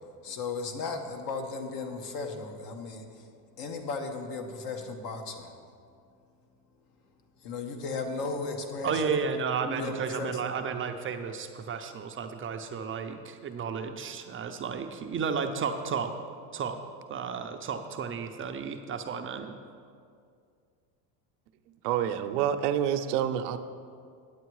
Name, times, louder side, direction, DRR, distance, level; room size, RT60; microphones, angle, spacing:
voice 1, 0.2-3.3 3.6-5.5 7.4-9.0 9.6-10.4, left 4 dB, 60° left, 5 dB, 1.3 m, -35 dB
voice 2, 8.8-16.1 16.5-16.8 17.1-19.6, right 6 dB, 30° right, 6 dB, 0.5 m, -33 dB
voice 3, 21.8-23.6, right 10 dB, 80° right, 8 dB, 0.8 m, -27 dB
9.5 x 8.2 x 4.7 m, 2.2 s
supercardioid pair, 115°, 46 cm